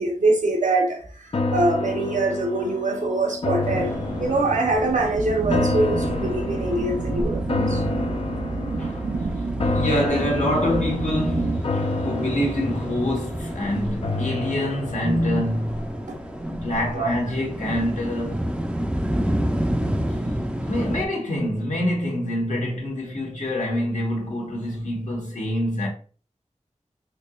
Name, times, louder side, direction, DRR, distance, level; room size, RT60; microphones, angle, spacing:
voice 1, 0.0-7.8 15.0-15.4 16.1-17.1, right 2 dB, 85° right, 0.8 m, -24 dB
sound 1, 1.3-16.6 17.0-17.1, left 2 dB, 50° left, 0.4 m, -30 dB
sound 2, 3.6-21.1, equal, 10° right, 0.4 m, -31 dB
sound 3, 5.0-11.6, right 3 dB, 70° right, 0.4 m, -29 dB
voice 2, 8.8-9.1 9.6-15.8 16.5-18.4 20.1-25.9, left 1 dB, 75° left, 1.3 m, -26 dB
4.4 x 2.8 x 2.3 m
wide cardioid pair, 75°, 13 cm